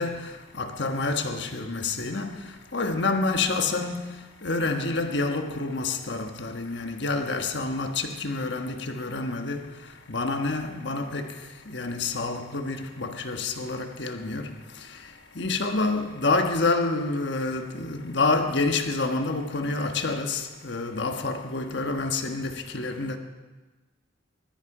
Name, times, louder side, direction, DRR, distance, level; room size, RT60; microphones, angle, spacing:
voice 1, 0.0-23.2, left 3 dB, 60° left, 1.4 m, -28 dB
20.5 x 13.0 x 4.9 m
head